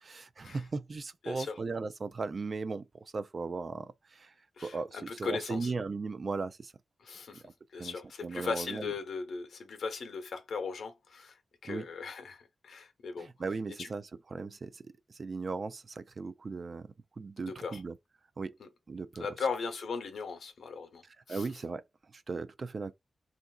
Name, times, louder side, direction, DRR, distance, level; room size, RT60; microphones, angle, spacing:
voice 1, 0.0-4.3 4.6-6.7 7.7-7.9 8.2-8.9 11.6-11.9 13.2-14.8 15.1-16.9 17.2-18.0 18.4-18.6 18.9-19.3 21.3-21.8 22.1-22.9, right 4 dB, 45° right, 0.3 m, -37 dB
voice 2, 1.2-1.6 4.6-5.7 7.0-7.4 7.7-11.4 11.6-13.3 13.8-13.9 17.4-17.8 18.6-18.7 19.2-21.0 21.3-21.5, left 5 dB, 85° left, 0.8 m, -38 dB
3.8 x 2.5 x 2.2 m
wide cardioid pair, 140°, 0 cm